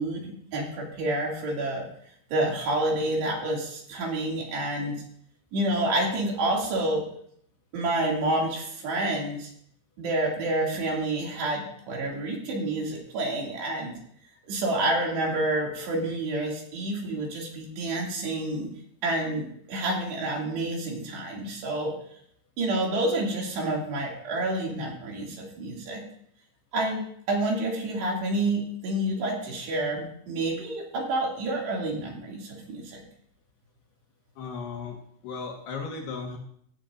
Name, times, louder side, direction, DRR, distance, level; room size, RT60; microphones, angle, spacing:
voice 1, 0.0-1.9 2.3-5.0 5.5-7.0 7.7-9.5 10.0-13.9 14.4-18.7 19.0-21.9 22.6-26.0 26.7-33.0, right 1 dB, 65° right, -2 dB, 4.5 m, -28 dB
voice 2, 34.4-35.0 35.2-36.4, left 5 dB, 65° left, 1 dB, 3.1 m, -35 dB
16.5 x 13.0 x 2.6 m, 0.66 s
omnidirectional pair, 5.6 m